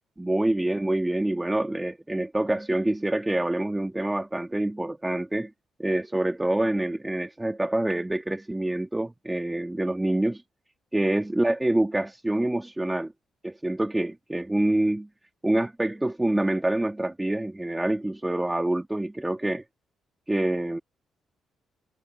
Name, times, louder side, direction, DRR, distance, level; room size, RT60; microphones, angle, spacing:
voice 1, 0.2-5.5 5.8-10.4 10.9-13.1 13.4-15.1 15.4-19.6 20.3-20.8, right 1 dB, 10° right, 2.1 m, -26 dB
cardioid pair, 90°, 0 cm